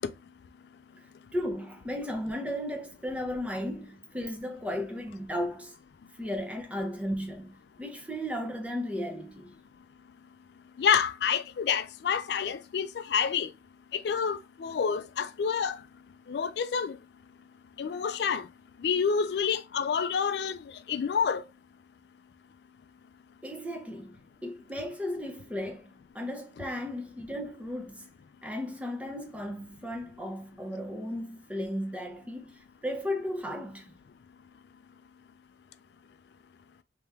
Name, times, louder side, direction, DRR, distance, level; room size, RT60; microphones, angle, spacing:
voice 1, 1.3-5.7 6.2-9.5 23.4-28.1 28.4-33.9, left 1 dB, 5° right, 0.6 m, -35 dB
voice 2, 10.8-13.5 13.9-15.8 16.3-17.0 17.8-18.4 18.8-20.6 20.9-21.4, left 6 dB, 65° left, 0.3 m, -28 dB
3.4 x 2.9 x 3.3 m
head